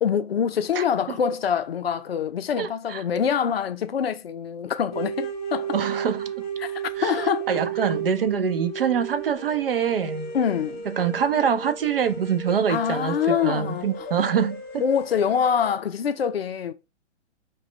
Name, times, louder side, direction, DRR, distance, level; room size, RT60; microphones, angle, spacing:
voice 1, 0.0-5.8 6.6-7.5 10.3-10.9 12.7-13.9 14.8-16.7, left 7 dB, 55° left, 0.5 m, -25 dB
voice 2, 2.6-3.0 5.7-6.3 7.0-7.2 7.5-10.3 10.9-14.8, right 7 dB, 50° right, 0.5 m, -25 dB
sound 1, 4.9-15.7, right 5 dB, 20° left, 0.9 m, -33 dB
4.7 x 2.2 x 3.1 m
figure-of-eight pair, 120°, 36 cm